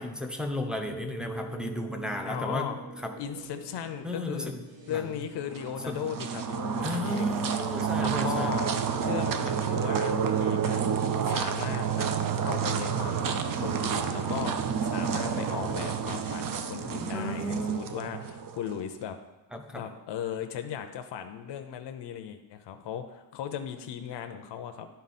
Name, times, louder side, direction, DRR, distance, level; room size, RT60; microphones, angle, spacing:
voice 1, 0.0-2.7 4.0-4.6 4.9-5.0 5.9-6.0 6.8-8.5 17.1-17.9 19.5-19.8, left 1 dB, ahead, 2 dB, 0.5 m, -33 dB
sound 1, 0.8-14.1, right 3 dB, 80° right, 1.3 m, -48 dB
voice 2, 2.3-2.8 3.2-4.6 4.9-7.5 8.0-8.7 9.0-11.0 11.2-12.1 12.4-19.2 19.7-24.9, left 9 dB, 65° left, 7 dB, 0.7 m, -37 dB
sound 2, 5.5-18.8, right 7 dB, 50° right, 0.5 m, -29 dB
11.0 x 4.0 x 4.2 m, 1.1 s
wide cardioid pair, 155°, 44 cm